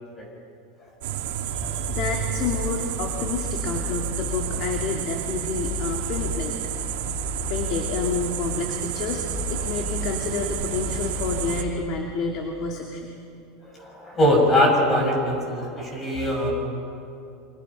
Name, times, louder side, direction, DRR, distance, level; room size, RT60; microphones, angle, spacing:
sound 1, 1.0-11.6, right 10 dB, 85° right, 2.1 m, -31 dB
voice 1, 1.4-6.6 7.5-13.1, left 4 dB, 45° left, 2 dB, 2.5 m, -29 dB
sound 2, 1.5-11.7, left 2 dB, 15° right, 3.2 m, -34 dB
voice 2, 13.6-16.5, left 1 dB, 20° left, 0 dB, 7.1 m, -22 dB
29.5 x 25.5 x 5.8 m, 2.6 s
supercardioid pair, 145°, 0 cm